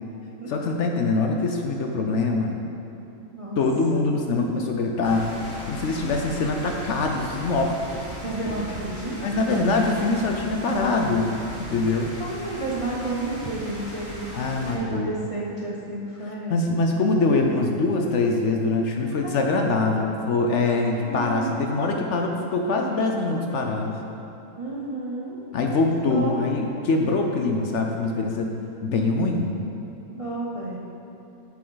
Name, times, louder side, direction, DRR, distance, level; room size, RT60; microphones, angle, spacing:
voice 1, 0.5-2.6 3.6-8.0 9.2-11.3 11.6-12.1 14.3-15.2 16.5-24.0 25.5-28.5 28.8-29.6, left 3 dB, 65° left, 2 dB, 0.9 m, -24 dB
sound 1, 5.0-14.8, equal, 10° left, 1.1 m, -37 dB
voice 2, 8.2-9.7 10.7-11.1 12.2-14.3 14.6-16.6 19.2-19.8 21.0-21.7 24.6-25.4 26.1-26.4 30.1-30.8, right 2 dB, 30° right, -5 dB, 0.6 m, -32 dB
7.6 x 7.6 x 3.9 m, 2.9 s
omnidirectional pair, 1.5 m